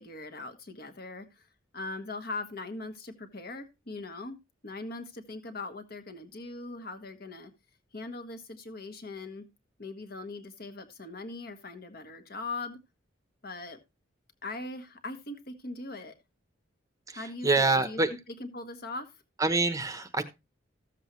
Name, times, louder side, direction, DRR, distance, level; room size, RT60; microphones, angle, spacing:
voice 1, 0.0-1.5 1.7-4.4 4.6-7.5 7.9-9.4 9.8-12.8 13.4-13.8 14.4-16.1 17.1-18.0 18.4-19.1, left 2 dB, 50° left, 1.4 m, -40 dB
voice 2, 17.1-18.1 19.4-20.2, right 3 dB, 15° right, 0.8 m, -26 dB
14.0 x 7.5 x 3.1 m
head